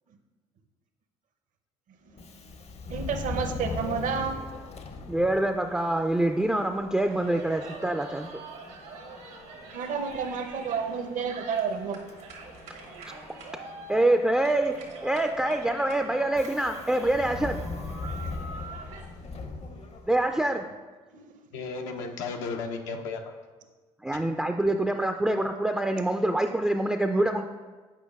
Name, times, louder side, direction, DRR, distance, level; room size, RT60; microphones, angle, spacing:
Subway metro underground, 2.1-20.5, left 3 dB, 45° left, 0.7 m, -41 dB
voice 1, 2.9-4.4 9.7-12.0 18.1-18.2 18.6-18.7 21.1-21.4, right 6 dB, 60° right, 6 dB, 0.7 m, -30 dB
voice 2, 5.1-8.3 13.9-14.8 15.0-17.6 20.1-20.6 24.0-27.5, right 1 dB, 5° right, 5 dB, 0.3 m, -25 dB
sound 1, 7.0-19.1, right 3 dB, 80° right, 1.2 m, -45 dB
voice 3, 21.5-23.3 27.2-27.3, left 4 dB, 80° left, 4 dB, 0.6 m, -34 dB
8.4 x 5.0 x 2.4 m, 1.3 s
hypercardioid pair, 60°, 15 cm